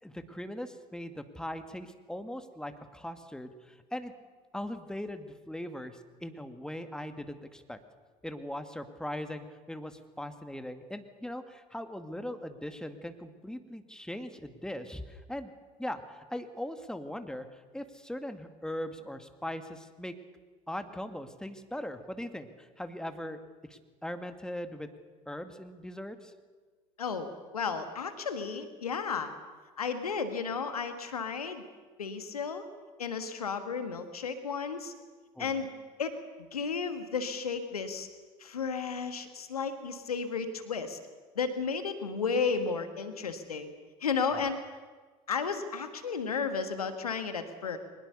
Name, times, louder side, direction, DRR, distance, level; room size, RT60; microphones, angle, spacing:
voice 1, 0.0-4.1 4.5-7.8 8.2-15.5 15.8-20.1 20.7-23.4 23.7-24.9 25.3-26.3 35.4-35.6 44.3-44.5, left 1 dB, 5° left, 8 dB, 2.2 m, -40 dB
voice 2, 27.0-29.3 29.8-31.6 32.0-32.6 33.0-34.9 35.4-35.7 36.0-36.2 36.5-38.1 38.4-41.0 41.3-43.7 44.0-44.6 45.3-47.8, left 5 dB, 85° left, 9 dB, 1.5 m, -33 dB
23.5 x 20.5 x 6.9 m, 1.4 s
figure-of-eight pair, 60°, 19 cm